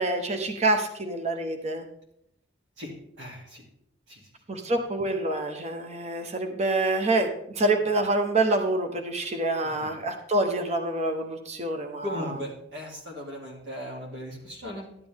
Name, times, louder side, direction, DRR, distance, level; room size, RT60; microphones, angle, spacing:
voice 1, 0.0-1.9 4.5-12.0, right 2 dB, 35° right, 5 dB, 1.0 m, -26 dB
voice 2, 2.8-3.6 4.1-4.3 9.6-9.9 12.0-14.9, left 1 dB, 70° right, 0 dB, 2.7 m, -38 dB
12.0 x 8.5 x 3.5 m, 0.75 s
head